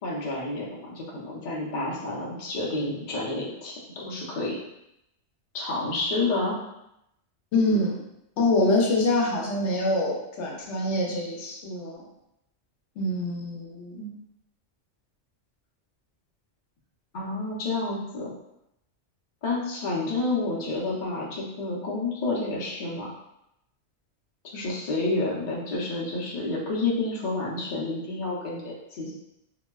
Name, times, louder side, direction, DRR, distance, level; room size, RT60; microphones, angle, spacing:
voice 1, 0.0-4.6 5.5-6.6 17.1-18.3 19.4-23.1 24.5-29.1, left 2 dB, 50° left, -4 dB, 0.7 m, -29 dB
voice 2, 7.5-8.0 8.4-12.0 13.0-14.1, left 2 dB, 80° left, -1 dB, 0.9 m, -25 dB
3.8 x 2.1 x 2.2 m, 0.82 s
omnidirectional pair, 1.2 m